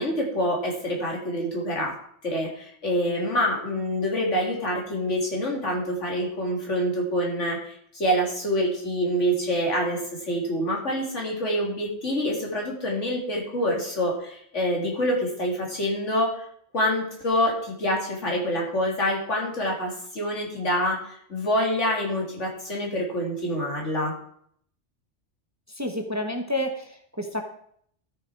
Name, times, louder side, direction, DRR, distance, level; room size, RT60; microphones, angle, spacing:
voice 1, 0.0-1.9 2.2-16.3 16.7-24.1, equal, 90° left, -1 dB, 3.1 m, -26 dB
voice 2, 25.8-26.8 27.2-27.4, left 1 dB, 15° right, 4 dB, 1.1 m, -28 dB
13.5 x 6.7 x 4.7 m, 0.65 s
omnidirectional pair, 1.2 m